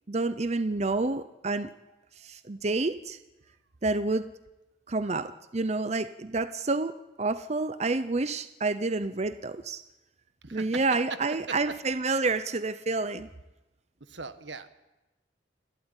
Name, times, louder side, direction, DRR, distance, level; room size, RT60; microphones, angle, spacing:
voice 1, 0.1-1.7 2.2-3.2 3.8-4.3 4.9-6.9 7.2-9.8 10.5-13.3, right 3 dB, 35° right, 12 dB, 0.7 m, -29 dB
voice 2, 10.4-10.8 11.3-11.6 14.0-14.7, right 4 dB, 80° right, 12 dB, 1.5 m, -40 dB
29.0 x 13.0 x 9.9 m, 1.0 s
head